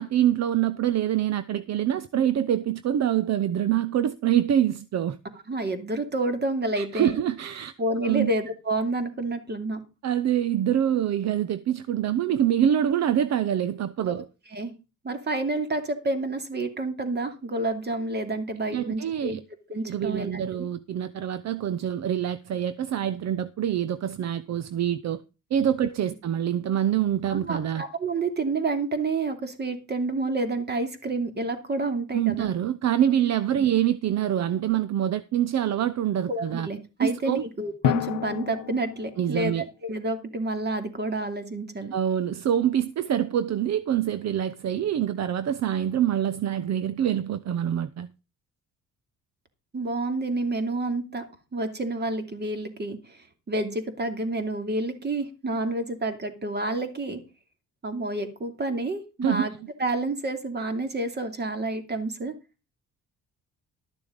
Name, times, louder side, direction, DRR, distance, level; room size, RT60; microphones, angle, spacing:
voice 1, 0.0-5.2 6.8-7.7 8.0-8.3 10.0-14.3 18.7-19.4 19.8-25.2 25.5-27.8 32.1-36.7 37.0-37.4 39.2-39.6 41.9-48.1 59.2-59.5, right 10 dB, 60° right, 0.8 m, -25 dB
voice 2, 5.5-7.1 7.8-9.8 14.1-14.2 14.5-14.7 15.0-19.4 19.7-20.7 27.3-32.5 33.6-33.7 36.3-41.9 49.7-51.3 51.5-57.2 57.8-59.5 59.8-62.3, right 2 dB, 35° right, 2.7 m, -29 dB
Drum, 34.6-34.7 37.8-39.6, left 13 dB, 90° left, 0.7 m, -30 dB
12.5 x 6.9 x 5.1 m
cardioid pair, 90°, 30 cm